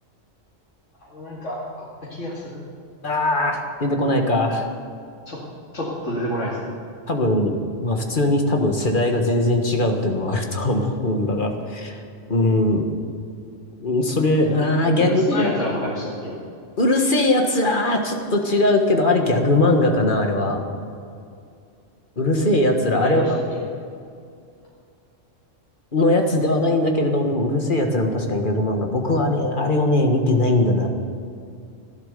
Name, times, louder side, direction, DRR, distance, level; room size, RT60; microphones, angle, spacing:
voice 1, 1.0-2.6 5.3-5.4 5.7-6.7 14.9-16.4 22.9-23.6, left 1 dB, 65° left, -6 dB, 2.7 m, -29 dB
voice 2, 3.0-4.7 7.1-12.0 12.3-12.8 13.8-15.6 16.8-20.6 22.2-23.4 25.9-30.9, left 1 dB, 40° left, 3 dB, 1.7 m, -20 dB
15.0 x 12.0 x 6.8 m, 2.4 s
omnidirectional pair, 1.3 m